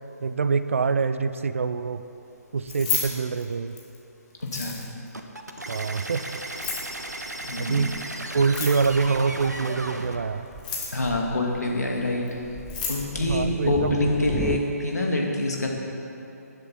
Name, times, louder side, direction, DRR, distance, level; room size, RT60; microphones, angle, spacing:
voice 1, 0.2-2.0 2.5-3.8 5.7-6.2 7.6-7.9 8.3-10.5 13.2-14.0, right 5 dB, 50° right, 12 dB, 0.6 m, -25 dB
Keys jangling, 2.6-4.0 4.4-5.1 6.4-6.9 8.4-9.1 10.4-11.1 12.3-12.4 12.6-13.0, left 5 dB, 30° left, 2.3 m, -31 dB
voice 2, 4.4-4.8 7.4-7.8 10.9-12.4 12.9-15.7, left 2 dB, 70° left, -1 dB, 2.5 m, -26 dB
sound 1, 5.1-10.2, right 1 dB, 80° right, 1.3 m, -35 dB
Thunder, 6.7-14.6, right 3 dB, 5° right, 0.4 m, -39 dB
18.5 x 10.5 x 4.4 m, 2.9 s
figure-of-eight pair, 140°, 9 cm